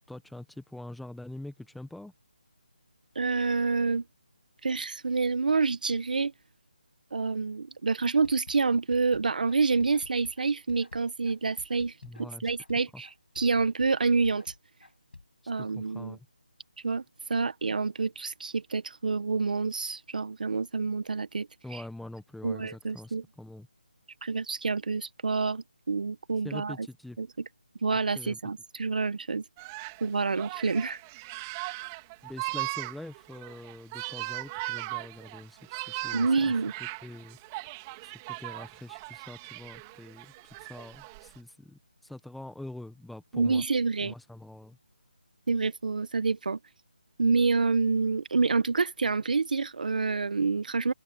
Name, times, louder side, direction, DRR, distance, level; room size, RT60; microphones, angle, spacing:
voice 1, 0.1-2.1 12.0-12.5 12.9-13.0 15.6-16.3 21.6-23.7 26.4-27.2 28.1-28.4 32.2-37.4 38.0-43.6 44.0-44.8, left 1 dB, ahead, 1.0 m, -44 dB
voice 2, 3.1-4.0 4.6-6.3 7.1-11.9 12.2-13.1 13.3-14.5 15.5-16.2 16.8-17.0 17.3-21.5 22.4-23.2 24.2-26.9 27.2-27.3 27.8-29.4 30.0-31.0 36.1-36.7 43.3-44.1 45.5-46.6 47.2-50.9, right 4 dB, 60° right, 1.5 m, -27 dB
sound 1, 8.1-15.2, left 3 dB, 85° left, 7.3 m, -50 dB
sound 2, 29.6-41.4, right 24 dB, 15° right, 3.0 m, -39 dB
figure-of-eight pair, 165°, 5 cm